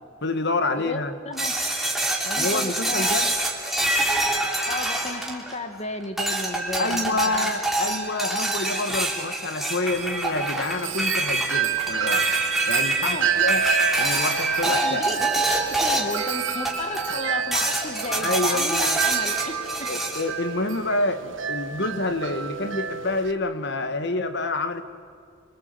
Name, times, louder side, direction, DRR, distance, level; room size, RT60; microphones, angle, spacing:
voice 1, 0.2-1.2 2.4-3.3 6.8-12.3 12.7-13.6 14.0-15.1 18.2-19.0 19.9-24.8, left 2 dB, 60° left, 9 dB, 1.8 m, -28 dB
sound 1, 1.4-5.7 6.2-16.2 16.6-17.2 17.5-20.3, right 2 dB, ahead, 3.4 m, -26 dB
voice 2, 2.2-3.2 4.7-7.5 13.0-13.3 14.6-19.5, left 2 dB, 35° left, 7 dB, 2.1 m, -33 dB
Wind chime, 9.9-23.3, right 8 dB, 65° right, 1.5 m, -29 dB
26.0 x 24.5 x 8.1 m, 2.3 s
head